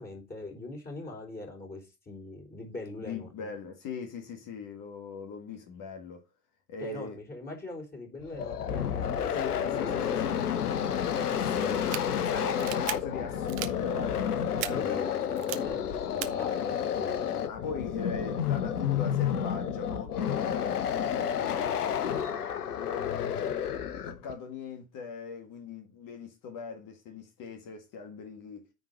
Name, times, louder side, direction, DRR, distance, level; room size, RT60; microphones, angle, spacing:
voice 1, 0.0-3.5 6.8-10.6 11.5-12.0 14.6-17.4, left 2 dB, 20° left, 3.6 m, -42 dB
voice 2, 3.0-6.2 6.7-7.2 9.3-10.3 11.1-11.8 12.3-15.1 15.5-15.8 17.5-23.7 24.0-28.7, left 5 dB, 45° left, 1.8 m, -41 dB
sound 1, 8.2-24.3, left 8 dB, 75° left, 0.9 m, -30 dB
sound 2, 11.7-12.0 12.6-12.9 13.5-13.7 14.6-14.7 15.4-15.6 16.2-16.3, right 15 dB, 60° right, 1.0 m, -34 dB
9.6 x 4.1 x 5.2 m
figure-of-eight pair, 70°, 46 cm